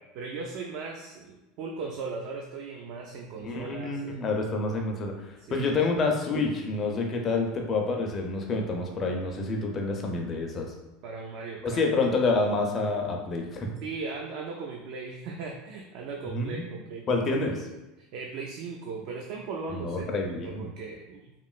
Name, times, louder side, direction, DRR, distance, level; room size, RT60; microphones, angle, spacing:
voice 1, 0.1-4.2 5.4-5.8 11.0-11.8 13.8-17.2 17.5-17.6 18.0-21.3, right 4 dB, 55° right, 0 dB, 0.3 m, -38 dB
voice 2, 3.4-10.7 11.6-13.7 16.3-16.6 17.1-17.5 19.7-20.7, left 3 dB, 25° left, 2 dB, 0.4 m, -28 dB
3.0 x 2.5 x 2.3 m, 1.0 s
supercardioid pair, 150°, 0 cm